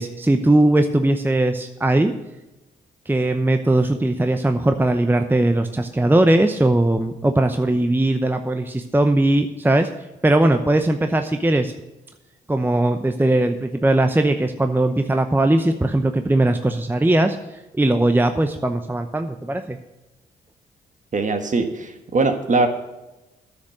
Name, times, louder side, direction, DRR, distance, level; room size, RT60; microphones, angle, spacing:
voice 1, 0.0-2.1 3.1-9.9 10.2-11.7 12.5-19.8, right 1 dB, 10° right, 7 dB, 0.7 m, -19 dB
voice 2, 21.1-22.7, right 3 dB, 40° right, 6 dB, 1.5 m, -21 dB
9.6 x 6.5 x 7.9 m, 1.0 s
supercardioid pair, 50°, 19 cm